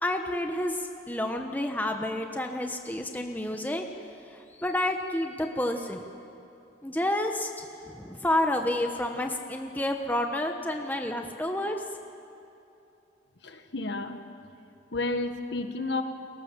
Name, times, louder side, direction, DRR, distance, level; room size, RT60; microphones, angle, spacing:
voice 1, 0.0-3.8 4.6-6.0 6.8-7.7 7.9-11.8, left 1 dB, 10° left, 4 dB, 1.2 m, -29 dB
voice 2, 13.4-14.2 14.9-16.0, left 2 dB, 60° left, 6 dB, 1.7 m, -31 dB
30.0 x 22.0 x 7.4 m, 2.8 s
head